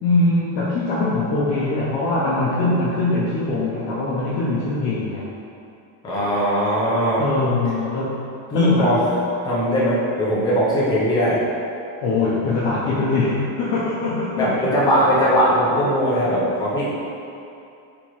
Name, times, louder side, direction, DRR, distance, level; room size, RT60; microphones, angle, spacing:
voice 1, 0.0-5.3 7.2-9.0 12.0-14.6, left 2 dB, 50° left, -8 dB, 0.6 m, -22 dB
voice 2, 6.0-7.2 8.5-9.0 9.4-11.4 14.4-16.9, equal, 10° left, -8 dB, 0.3 m, -20 dB
4.5 x 3.0 x 2.9 m, 2.7 s
cardioid pair, 170°, 45 cm